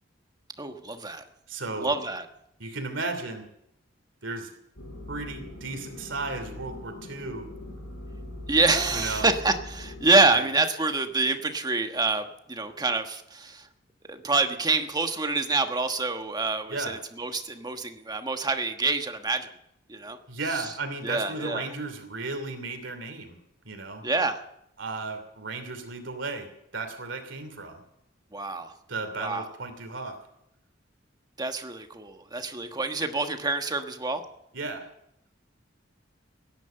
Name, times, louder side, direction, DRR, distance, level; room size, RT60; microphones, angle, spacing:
voice 1, 0.6-1.2 1.8-2.2 8.5-13.6 14.1-19.5 19.9-20.2 20.5-20.6 21.0-21.7 24.0-24.4 28.3-28.7 29.2-29.4 31.4-34.2, right 3 dB, 20° right, 6 dB, 1.3 m, -26 dB
voice 2, 1.5-1.9 2.6-3.4 4.2-4.5 5.1-7.5 8.9-9.3 10.3-10.5 16.7-17.0 20.3-23.4 23.6-24.0 24.8-27.8 28.9-30.2 34.5-34.9, right 3 dB, 70° right, 7 dB, 2.9 m, -34 dB
sound 1, 4.8-10.2, left 1 dB, 75° left, 7.3 m, -41 dB
17.0 x 10.5 x 7.8 m, 0.77 s
head